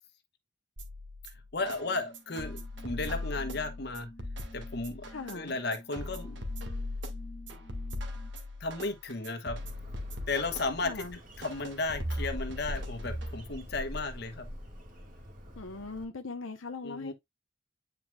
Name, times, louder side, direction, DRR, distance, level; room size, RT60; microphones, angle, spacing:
sound 1, 0.8-13.7, left 1 dB, 60° right, 1.7 m, -39 dB
voice 1, 1.5-4.1 4.5-6.4 8.6-9.6 10.3-11.0 11.4-14.5 16.8-17.1, left 3 dB, 55° left, 1.2 m, -34 dB
sound 2, 1.6-8.3, left 1 dB, 20° left, 0.7 m, -51 dB
voice 2, 5.0-5.5 10.8-11.2 15.5-17.1, left 3 dB, 85° left, 0.8 m, -40 dB
Bird, 9.5-16.0, left 1 dB, 45° right, 2.1 m, -44 dB
9.1 x 4.6 x 2.3 m
head